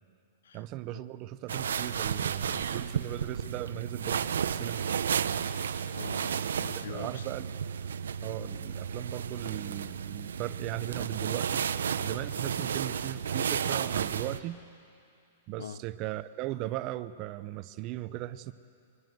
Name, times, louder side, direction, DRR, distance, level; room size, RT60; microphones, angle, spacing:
voice 1, 0.5-4.8 6.6-7.5 8.2-11.6 12.0-14.6 15.5-18.5, right 15 dB, 35° right, 14 dB, 0.6 m, -38 dB
sound 1, 1.5-14.4, right 7 dB, 90° right, 0.6 m, -32 dB
voice 2, 5.4-7.2 8.4-8.5 15.6-15.8, left 7 dB, 85° left, 17 dB, 0.7 m, -44 dB
22.5 x 20.0 x 7.8 m, 2.5 s
hypercardioid pair, 150°, 0 cm